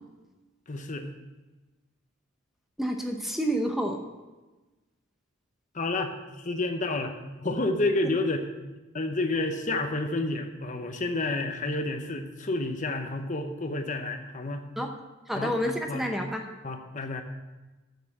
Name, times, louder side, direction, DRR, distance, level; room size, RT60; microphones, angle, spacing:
voice 1, 0.7-1.1 5.7-7.2 7.4-8.5 8.9-14.7 15.3-15.5 15.9-16.1 16.6-17.2, left 2 dB, 40° left, 6 dB, 0.9 m, -30 dB
voice 2, 2.8-4.0 14.8-14.9 15.3-16.4, equal, ahead, 3 dB, 0.8 m, -29 dB
8.3 x 6.7 x 7.4 m, 1.2 s
head